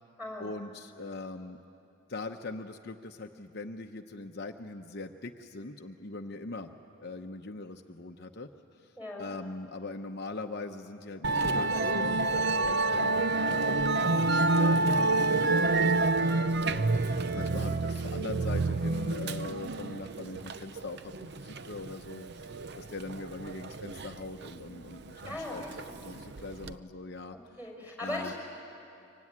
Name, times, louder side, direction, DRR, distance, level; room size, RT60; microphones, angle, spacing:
voice 1, 0.4-1.6 2.1-6.7 7.0-12.3 12.6-27.4 28.0-28.3, left 3 dB, 50° left, 4 dB, 0.8 m, -42 dB
voice 2, 9.0-9.3 25.3-25.9 27.6-28.4, left 2 dB, 5° right, 0 dB, 5.7 m, -38 dB
Musical instrument, 11.2-26.7, right 3 dB, 50° right, 0.6 m, -28 dB
25.0 x 24.5 x 9.7 m, 2.7 s
head